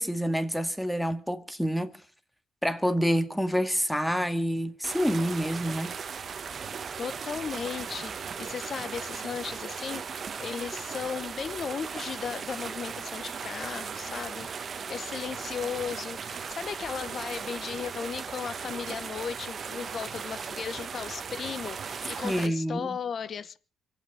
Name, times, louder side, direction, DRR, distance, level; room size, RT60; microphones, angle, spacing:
voice 1, 0.0-1.9 2.6-5.9 22.2-22.9, equal, 5° left, 1.8 m, -27 dB
sound 1, 4.8-22.5, right 6 dB, 45° right, 1.2 m, -37 dB
voice 2, 7.0-23.6, left 6 dB, 50° left, 1.0 m, -36 dB
25.0 x 8.9 x 6.0 m
cardioid pair, 90°, 0 cm